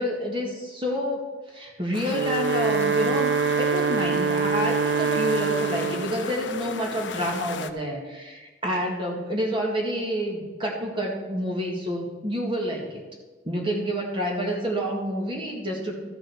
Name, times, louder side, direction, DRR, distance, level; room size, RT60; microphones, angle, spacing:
voice 1, 0.0-13.0 13.4-16.0, equal, 25° right, 0 dB, 2.0 m, -28 dB
sound 1, 1.9-7.7, left 6 dB, 80° left, 0.6 m, -36 dB
Wind instrument woodwind instrument, 2.0-6.2, right 5 dB, 60° right, 0.3 m, -24 dB
13.5 x 6.4 x 6.4 m, 1.3 s
head